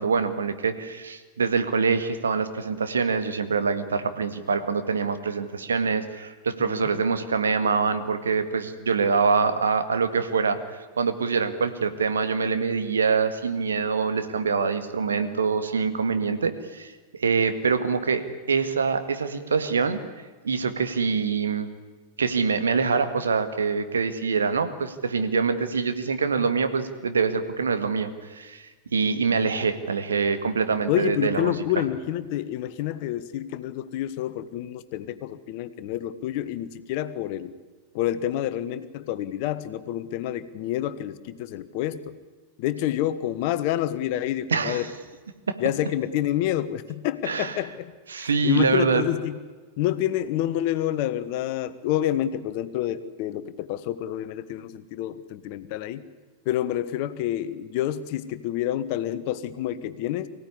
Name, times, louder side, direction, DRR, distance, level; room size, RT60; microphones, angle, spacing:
voice 1, 0.0-10.6 11.0-20.0 20.4-21.7 22.2-31.5 44.5-44.9 45.5-45.6 47.3-47.5 48.1-49.0, right 5 dB, 70° right, 10 dB, 1.9 m, -25 dB
voice 2, 30.9-37.5 37.9-42.1 42.6-44.9 45.6-49.4 49.8-56.0 56.4-60.3, left 12 dB, 45° left, 13 dB, 1.3 m, -28 dB
24.0 x 16.5 x 9.9 m, 1.4 s
figure-of-eight pair, 90°, 0 cm